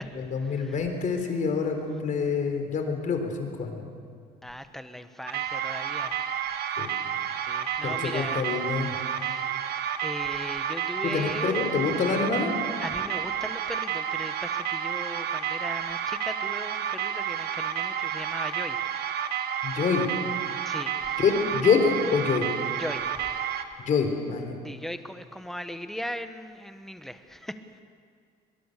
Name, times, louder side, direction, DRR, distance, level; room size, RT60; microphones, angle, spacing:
voice 1, 0.2-3.8 6.8-6.9 7.8-9.0 11.0-12.5 19.6-20.0 21.2-22.5 23.8-24.5, left 5 dB, 50° left, 5 dB, 3.8 m, -26 dB
voice 2, 4.4-6.2 6.7-7.0 7.5-8.5 9.1-9.5 10.0-11.7 12.8-18.8 19.7-19.8 20.6-21.2 22.8-23.1 23.7-23.8 24.6-27.8, equal, ahead, 9 dB, 1.3 m, -38 dB
sound 1, 5.3-23.6, right 9 dB, 70° right, 1.4 m, -30 dB
22.5 x 21.5 x 6.7 m, 2.2 s
cardioid pair, 110°, 17 cm